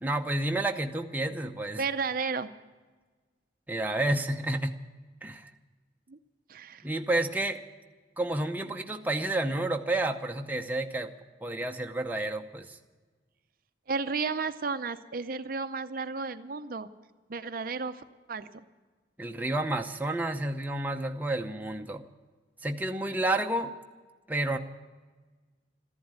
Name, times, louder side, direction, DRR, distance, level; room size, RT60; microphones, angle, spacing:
voice 1, 0.0-1.8 3.7-4.7 5.2-5.5 6.8-7.6 8.2-11.1 11.4-12.8 19.2-22.0 22.6-23.7 24.3-24.6, right 2 dB, 10° right, 3 dB, 0.7 m, -30 dB
voice 2, 1.8-2.5 6.1-6.2 6.5-6.8 13.9-16.9 17.3-18.0 18.3-18.5, right 4 dB, 50° right, 9 dB, 0.6 m, -33 dB
14.0 x 11.0 x 8.9 m, 1.3 s
head